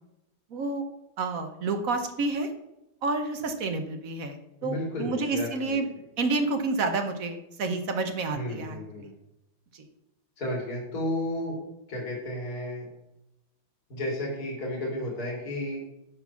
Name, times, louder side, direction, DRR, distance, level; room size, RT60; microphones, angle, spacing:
voice 1, 0.5-0.9 1.2-2.5 3.0-5.9 6.2-9.1 9.7-9.8, right 3 dB, 55° right, 6 dB, 1.3 m, -29 dB
voice 2, 4.6-5.8 8.3-9.1 10.4-11.6 11.9-12.9 13.9-15.8, left 1 dB, 55° left, -2 dB, 2.9 m, -32 dB
10.5 x 4.4 x 5.7 m, 0.90 s
omnidirectional pair, 2.0 m